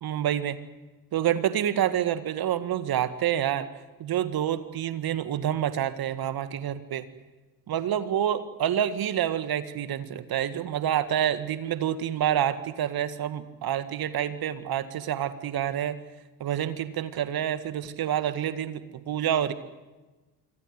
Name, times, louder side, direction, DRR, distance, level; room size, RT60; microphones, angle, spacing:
voice 1, 0.0-0.6 1.1-3.7 4.0-7.1 7.7-16.0 16.4-19.5, right 10 dB, 45° right, 12 dB, 1.9 m, -28 dB
25.5 x 24.5 x 7.9 m, 1.2 s
figure-of-eight pair, 55°, 48 cm